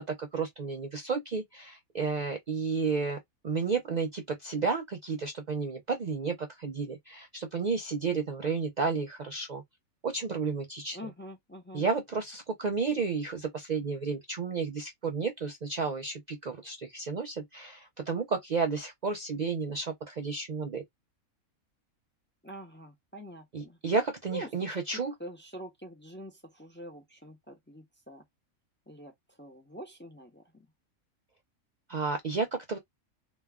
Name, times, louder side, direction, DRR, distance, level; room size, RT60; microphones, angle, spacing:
voice 1, 0.0-3.2 3.4-9.6 10.0-11.0 11.7-20.8 23.5-25.1 31.9-32.8, right 5 dB, 75° right, 0.4 m, -32 dB
voice 2, 10.9-11.8 22.4-23.8 24.3-24.8 25.2-28.2 28.9-30.7, equal, 10° left, 0.5 m, -45 dB
3.0 x 2.3 x 3.4 m
omnidirectional pair, 1.5 m